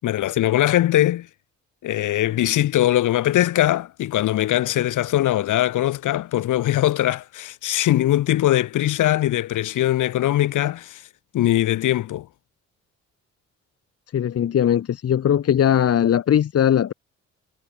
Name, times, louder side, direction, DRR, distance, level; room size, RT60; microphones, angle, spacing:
voice 1, 0.0-1.3 1.8-11.0 11.3-12.3, left 13 dB, 80° left, 5.7 m, -21 dB
voice 2, 14.1-16.9, left 9 dB, 50° left, 1.3 m, -19 dB
cardioid pair, 90°, 30 cm